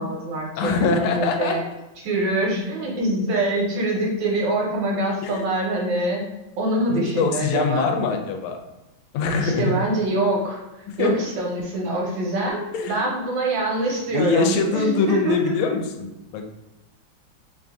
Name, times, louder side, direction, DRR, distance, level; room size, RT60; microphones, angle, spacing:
voice 1, 0.0-1.6 2.0-6.2 6.6-7.9 9.4-12.6 12.9-15.7, right 2 dB, 70° right, -1 dB, 1.5 m, -25 dB
voice 2, 0.6-1.6 5.2-5.4 6.9-8.6 9.1-9.7 10.9-11.2 12.7-13.1 14.1-16.5, left 4 dB, 85° left, 4 dB, 1.4 m, -23 dB
3.3 x 2.6 x 3.4 m, 0.97 s
omnidirectional pair, 2.2 m